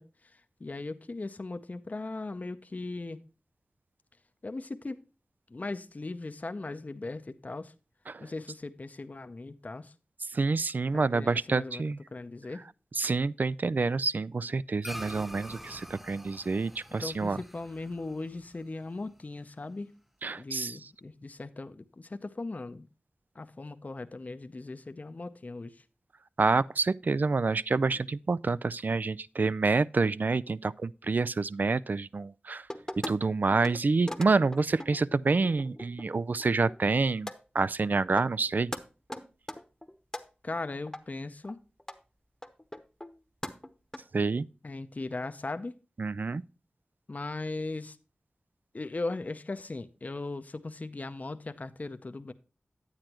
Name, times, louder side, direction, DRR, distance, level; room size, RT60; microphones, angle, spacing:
voice 1, 0.0-3.2 4.4-5.0 5.5-7.7 8.2-9.9 10.9-11.8 12.1-12.6 17.0-19.9 20.3-22.9 23.3-25.8 40.4-41.6 44.6-45.7 47.1-48.0 48.7-52.3, left 2 dB, 50° left, 0.6 m, -38 dB
voice 2, 10.3-12.0 13.0-17.4 20.2-20.8 26.4-32.7 33.1-38.7 44.1-44.5 46.0-46.4, right 4 dB, 60° right, 0.3 m, -28 dB
sound 1, 14.8-19.5, equal, 5° right, 0.6 m, -46 dB
sound 2, 32.7-33.1 33.5-33.8 34.0-36.0 36.4-37.0 37.3-37.4 37.8-37.9 38.2-38.5 38.7-38.8 39.1-40.2 40.9-41.0 41.4-41.5 41.8-42.0 42.4-43.2 43.4-44.0, left 1 dB, 15° left, 0.9 m, -39 dB
9.6 x 8.8 x 2.9 m
wide cardioid pair, 45°, 3 cm